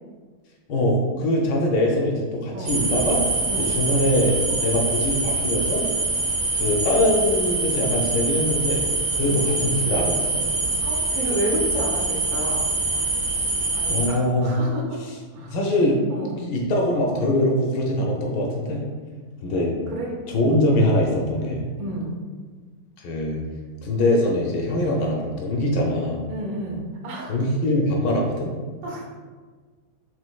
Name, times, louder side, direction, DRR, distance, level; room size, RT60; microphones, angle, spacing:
voice 1, 0.7-3.2 3.6-5.8 6.5-8.8 9.1-10.5 13.9-14.5 15.4-16.0 16.4-18.9 19.4-19.8 20.3-21.6 23.0-23.4 23.8-26.2 27.3-28.5, left 1 dB, 75° left, 0 dB, 1.1 m, -22 dB
sound 1, 2.7-14.1, right 2 dB, 50° right, 1.2 m, -24 dB
voice 2, 3.4-3.8 9.2-9.5 10.8-12.0 12.3-12.8 13.7-15.0 15.3-15.6 16.1-16.4 19.9-20.1 21.8-22.2 26.3-27.3 28.8-29.1, right 1 dB, 70° right, -2 dB, 1.5 m, -31 dB
5.1 x 3.6 x 2.3 m, 1.5 s
omnidirectional pair, 2.2 m